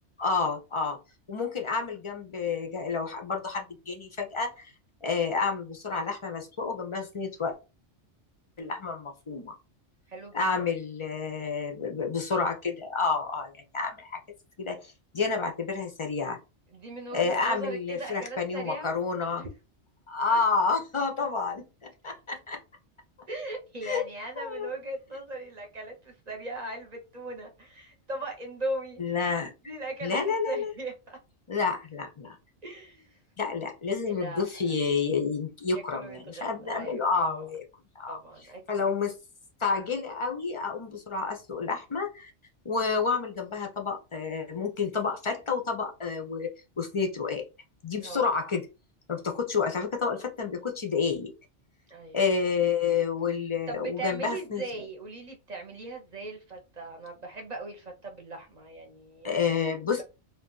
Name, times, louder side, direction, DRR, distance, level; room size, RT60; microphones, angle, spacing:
voice 1, 0.2-1.0 1.3-4.7 5.0-7.5 8.6-9.5 10.3-14.2 14.6-16.4 17.1-19.4 20.1-21.7 22.0-22.6 23.8-24.1 24.4-24.7 29.0-29.5 30.0-30.7 31.5-32.4 33.4-37.6 38.0-38.2 38.7-39.2 39.6-42.3 42.6-46.5 46.8-47.4 47.8-48.7 49.1-51.3 52.1-54.6 59.2-60.0, left 5 dB, 45° left, 3 dB, 0.4 m, -29 dB
voice 2, 10.1-10.7 16.7-19.0 19.4-19.5 20.3-20.4 23.3-29.3 29.6-30.2 30.5-31.2 32.6-33.2 34.1-34.5 35.7-37.4 38.1-38.9 48.0-48.3 51.9-52.2 53.7-59.4 60.0-60.1, right 2 dB, 45° right, 2 dB, 0.7 m, -39 dB
2.5 x 2.3 x 3.7 m, 0.29 s
omnidirectional pair, 1.2 m